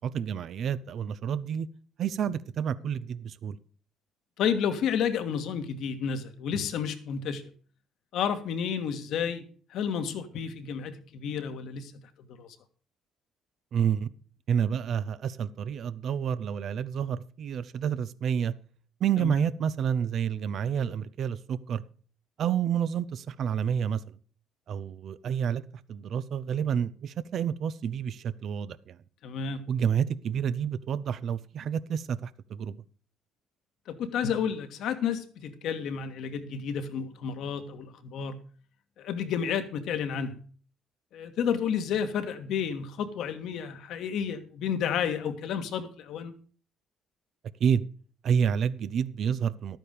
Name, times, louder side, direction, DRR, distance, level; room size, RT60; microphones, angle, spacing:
voice 1, 0.0-1.7 2.0-3.6 13.7-14.1 14.5-18.5 19.0-21.8 22.4-24.0 24.7-25.6 25.9-29.0 29.7-32.8 47.6-47.8 48.2-49.8, right 8 dB, 60° right, 15 dB, 0.8 m, -29 dB
voice 2, 4.4-7.5 8.1-9.4 9.7-11.9 12.3-12.5 19.2-19.3 29.2-29.6 33.9-38.4 39.0-40.3 41.1-46.3, left 7 dB, 65° left, 9 dB, 1.6 m, -31 dB
12.5 x 9.1 x 5.2 m, 0.42 s
hypercardioid pair, 55°, 0 cm